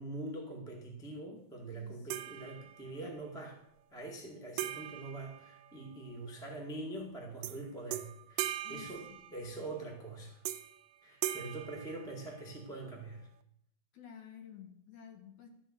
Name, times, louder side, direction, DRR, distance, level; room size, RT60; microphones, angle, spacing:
voice 1, 0.0-3.6 3.9-10.4 11.0-13.3, right 2 dB, 5° left, 1 dB, 0.3 m, -44 dB
sound 1, 2.1-3.1 4.6-6.1 7.4-7.6 7.9-9.7 10.4-10.8 11.2-12.6, right 12 dB, 80° right, 1.8 m, -40 dB
voice 2, 8.6-9.2 13.9-15.5, left 8 dB, 65° left, 4 dB, 2.5 m, -52 dB
12.5 x 5.4 x 7.5 m, 0.74 s
omnidirectional pair, 4.0 m